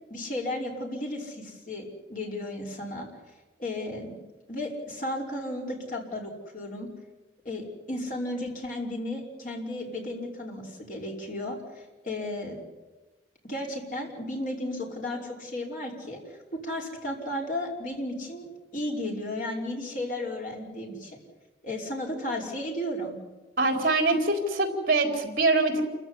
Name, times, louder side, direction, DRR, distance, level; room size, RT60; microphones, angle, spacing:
voice 1, 0.1-3.1 3.6-4.1 4.5-6.9 7.5-12.6 13.4-21.2 21.6-23.1, left 1 dB, 45° left, 0 dB, 5.4 m, -34 dB
voice 2, 23.6-25.8, right 2 dB, 50° right, 4 dB, 4.2 m, -24 dB
28.5 x 15.5 x 9.9 m, 1.2 s
head